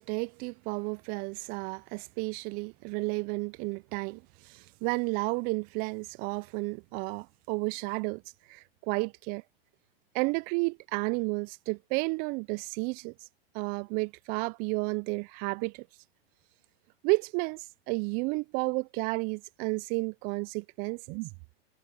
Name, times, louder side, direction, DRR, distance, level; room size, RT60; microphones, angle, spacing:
voice 1, 0.0-8.2 8.5-9.4 10.1-13.1 13.5-15.9 17.0-21.3, right 29 dB, 30° right, 0.4 m, -32 dB
hypercardioid pair, 115°, 31 cm